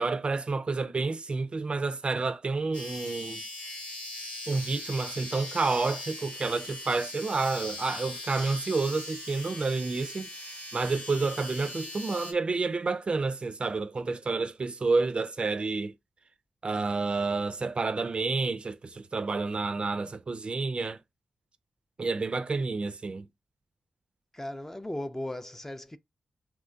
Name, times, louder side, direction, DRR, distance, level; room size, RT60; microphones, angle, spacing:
voice 1, 0.0-3.4 4.5-15.9 16.6-21.0 22.0-23.3, right 3 dB, 45° right, 0.4 m, -29 dB
sound 1, 2.7-12.3, left 2 dB, 65° left, 1.1 m, -40 dB
voice 2, 24.3-26.0, left 1 dB, 15° left, 0.4 m, -37 dB
2.9 x 2.2 x 2.5 m
supercardioid pair, 40°, 3 cm